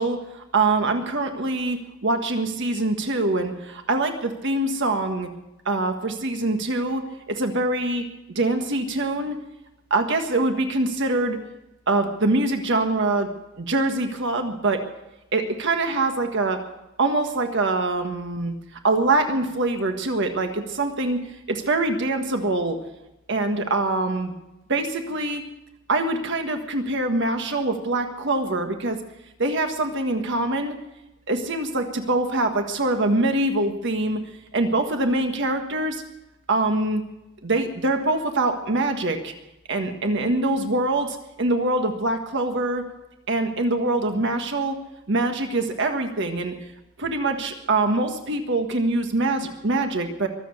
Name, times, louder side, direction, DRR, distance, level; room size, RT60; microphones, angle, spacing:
voice 1, 0.0-5.3 5.6-8.0 8.3-9.4 9.9-11.4 11.9-13.3 13.6-14.8 15.3-16.6 17.0-18.5 18.8-21.2 21.5-22.8 23.3-24.3 24.7-25.4 25.9-29.0 29.4-30.7 31.3-34.2 34.5-36.0 36.5-37.0 37.4-39.3 39.7-42.8 43.3-44.8 45.1-46.5 47.0-50.3, right 2 dB, 60° right, 5 dB, 1.6 m, -24 dB
23.5 x 7.8 x 7.9 m, 0.93 s
head